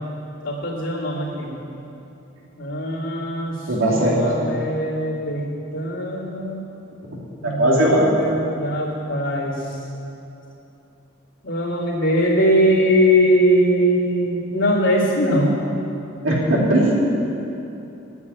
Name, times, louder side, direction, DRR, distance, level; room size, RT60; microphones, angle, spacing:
voice 1, 0.4-1.5 2.6-3.6 3.8-5.4 5.7-6.6 7.4-9.6 11.4-15.5, equal, 70° left, -6 dB, 2.8 m, -21 dB
voice 2, 3.7-4.4 7.4-8.1 16.2-16.9, right 1 dB, 85° right, -3 dB, 2.7 m, -18 dB
9.6 x 8.3 x 9.5 m, 2.9 s
head